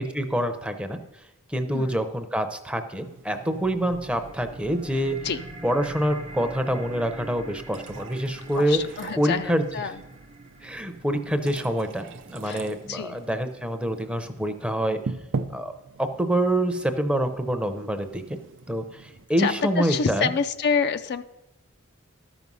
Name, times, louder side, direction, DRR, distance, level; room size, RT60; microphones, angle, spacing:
voice 1, 0.1-1.0 1.5-5.2 5.6-8.8 9.2-9.6 10.6-15.0 15.5-15.7 16.0-18.2 18.7-20.3, right 1 dB, 5° right, 8 dB, 0.6 m, -26 dB
voice 2, 1.7-2.0 5.2-5.4 8.6-10.0 12.4-13.2 19.4-21.2, left 5 dB, 50° left, 10 dB, 0.4 m, -27 dB
sound 1, 2.9-19.3, right 4 dB, 60° right, 0.5 m, -42 dB
sound 2, 3.6-14.6, right 2 dB, 35° right, 0.9 m, -44 dB
12.5 x 6.1 x 5.4 m, 0.99 s
head